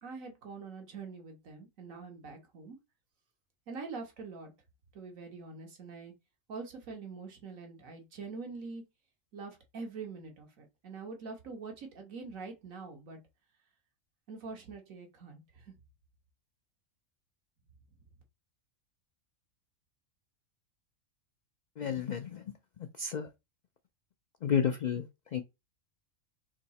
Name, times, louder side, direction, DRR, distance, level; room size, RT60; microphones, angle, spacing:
voice 1, 0.0-2.8 3.7-4.5 4.9-6.1 6.5-8.8 9.3-13.2 14.3-15.7, right 4 dB, 85° right, 1.6 m, -44 dB
voice 2, 21.8-22.5 23.0-23.3 24.4-25.1 25.3-25.4, left 7 dB, 85° left, 0.4 m, -31 dB
3.7 x 2.8 x 4.1 m
omnidirectional pair, 1.4 m